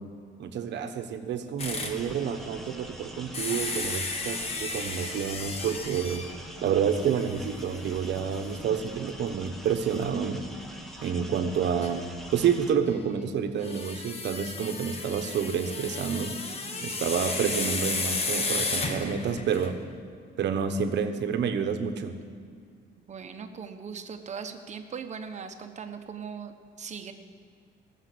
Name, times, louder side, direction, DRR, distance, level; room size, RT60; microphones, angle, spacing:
voice 1, 0.4-6.3 6.6-10.5 11.0-16.4 16.8-19.8 20.4-22.1, right 7 dB, 65° right, 7 dB, 1.1 m, -29 dB
sound 1, 1.6-2.0 3.3-6.4 7.0-7.1 7.6-7.7 9.9-10.0 11.8-11.9 13.6-19.8, left 3 dB, 30° left, 1.3 m, -33 dB
sound 2, 1.6-12.8, equal, ahead, 1.3 m, -44 dB
voice 2, 16.7-17.1 23.1-26.5 26.8-27.1, right 6 dB, 40° right, 7 dB, 1.1 m, -39 dB
18.0 x 7.3 x 8.5 m, 2.2 s
cardioid pair, 145°, 19 cm